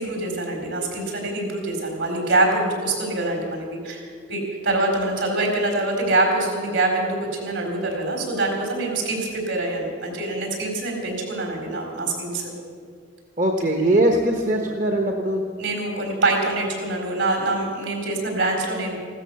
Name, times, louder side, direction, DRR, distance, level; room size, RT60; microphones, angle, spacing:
voice 1, 0.0-4.0 4.3-12.5 15.6-18.9, right 2 dB, 70° right, 1 dB, 4.2 m, -24 dB
voice 2, 13.4-15.4, right 1 dB, 40° right, 3 dB, 1.1 m, -21 dB
16.0 x 13.0 x 6.9 m, 2.1 s
head